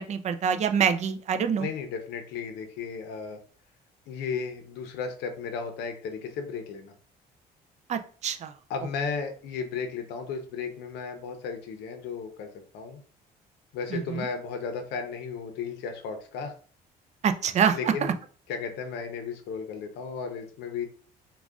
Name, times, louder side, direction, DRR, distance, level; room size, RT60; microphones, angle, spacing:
voice 1, 0.0-1.7 7.9-8.5 13.9-14.3 17.2-18.1, right 7 dB, 45° right, 9 dB, 0.5 m, -26 dB
voice 2, 1.6-3.4 4.1-6.9 8.7-13.0 13.7-16.5 17.7-18.1 18.5-20.9, left 5 dB, 80° left, 6 dB, 0.8 m, -34 dB
3.8 x 2.4 x 3.6 m, 0.42 s
cardioid pair, 110°, 17 cm